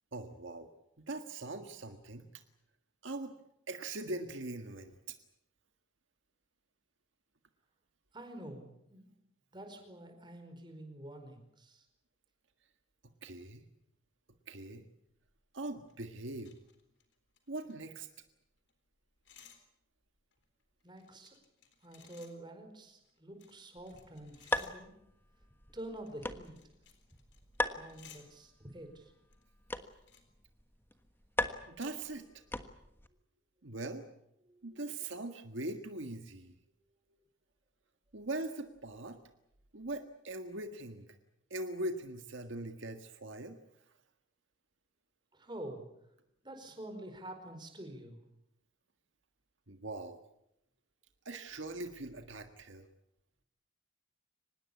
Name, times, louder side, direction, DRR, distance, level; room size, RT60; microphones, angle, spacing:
voice 1, 0.1-0.7 1.0-2.4 3.0-3.3 3.7-5.2 13.2-13.7 14.5-14.8 15.5-16.5 17.5-18.1 31.7-32.4 33.6-34.1 34.6-36.5 38.1-39.2 39.7-41.2 41.5-43.6 49.7-50.2 51.3-52.8, right 2 dB, 70° right, 6 dB, 1.7 m, -41 dB
voice 2, 8.1-9.1 9.5-11.9 20.8-21.4 21.8-24.9 25.7-26.6 27.7-29.1 34.4-34.6 45.3-45.8 46.4-48.2, right 1 dB, 25° right, 6 dB, 4.8 m, -47 dB
sound 1, 15.2-18.4 18.7-18.8 19.0-19.6 20.1-22.3 23.0-25.1 25.8-28.2 29.0-29.5 29.8-30.2, left 8 dB, 60° left, 3.9 m, -61 dB
sound 2, 23.8-33.1, left 1 dB, 10° left, 1.4 m, -41 dB
25.0 x 20.0 x 8.5 m, 0.82 s
head